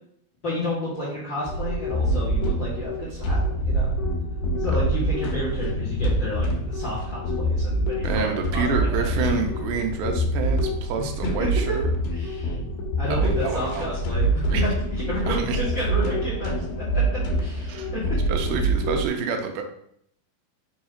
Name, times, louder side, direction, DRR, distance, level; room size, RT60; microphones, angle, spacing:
voice 1, 0.4-3.9 4.6-9.1 11.4-11.8 12.1-12.6 13.0-18.2, equal, 45° left, -7 dB, 1.6 m, -31 dB
sound 1, 1.5-19.1, right 1 dB, 80° left, 2.9 m, -25 dB
voice 2, 8.0-11.9 13.1-14.6 15.3-15.6 17.7-17.9 18.3-19.6, right 5 dB, 85° right, 4 dB, 2.4 m, -28 dB
6.2 x 3.0 x 5.0 m, 0.69 s
omnidirectional pair, 4.3 m